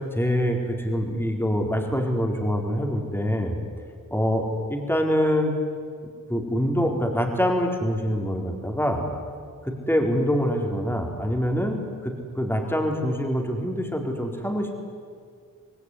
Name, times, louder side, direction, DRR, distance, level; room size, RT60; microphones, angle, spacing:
voice 1, 0.1-3.6 4.1-5.5 6.3-9.0 9.6-14.7, equal, 5° left, 2 dB, 4.2 m, -25 dB
27.0 x 20.0 x 9.9 m, 2.1 s
wide cardioid pair, 95°, 33 cm